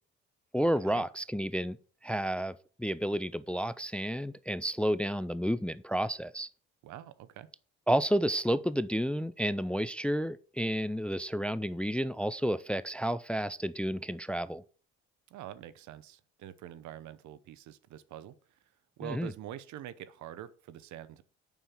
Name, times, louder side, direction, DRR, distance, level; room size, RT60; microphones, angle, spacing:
voice 1, 0.5-1.8 2.0-6.5 7.9-14.6 19.0-19.3, equal, 5° left, 0.4 m, -31 dB
voice 2, 6.8-7.5 15.3-18.3 19.0-21.2, right 11 dB, 75° right, 0.8 m, -45 dB
7.1 x 5.5 x 5.8 m
cardioid pair, 80°, 29 cm